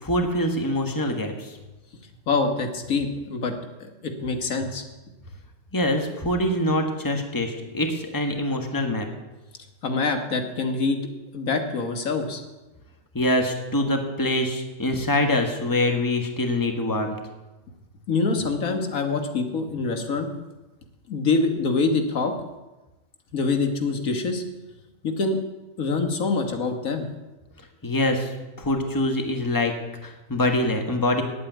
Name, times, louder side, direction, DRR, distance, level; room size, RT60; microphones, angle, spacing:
voice 1, 0.0-1.6 5.7-9.1 13.1-17.2 27.8-29.7 30.0-31.2, left 1 dB, 15° left, 4 dB, 1.4 m, -24 dB
voice 2, 2.3-3.5 3.8-4.8 9.8-11.0 11.3-12.4 18.1-20.3 21.1-22.3 23.3-24.4 25.0-25.4 25.8-27.1, left 4 dB, 90° left, 5 dB, 1.8 m, -25 dB
9.6 x 8.6 x 9.1 m, 1.1 s
omnidirectional pair, 1.4 m